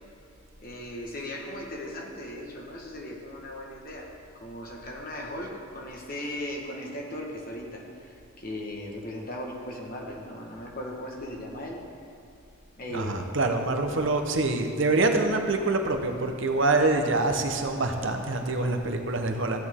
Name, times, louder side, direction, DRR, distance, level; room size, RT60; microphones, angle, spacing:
voice 1, 0.6-4.1 4.3-11.8 12.8-13.2, left 1 dB, 45° left, -1 dB, 1.5 m, -37 dB
voice 2, 12.9-19.6, right 2 dB, 65° right, 5 dB, 0.9 m, -25 dB
15.0 x 8.4 x 3.7 m, 2.6 s
head